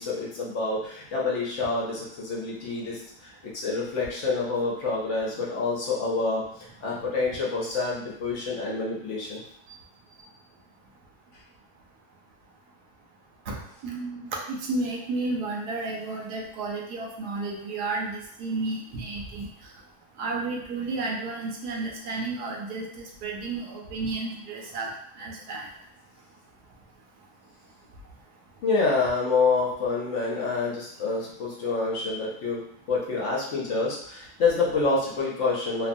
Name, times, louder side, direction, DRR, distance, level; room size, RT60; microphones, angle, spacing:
voice 1, 0.0-9.4 28.6-35.9, left 3 dB, 60° left, -4 dB, 0.8 m, -27 dB
voice 2, 13.8-19.5 20.2-22.9 23.2-24.9 25.2-25.6, right 3 dB, 80° right, -1 dB, 1.1 m, -32 dB
2.9 x 2.2 x 2.5 m, 0.69 s
omnidirectional pair, 1.7 m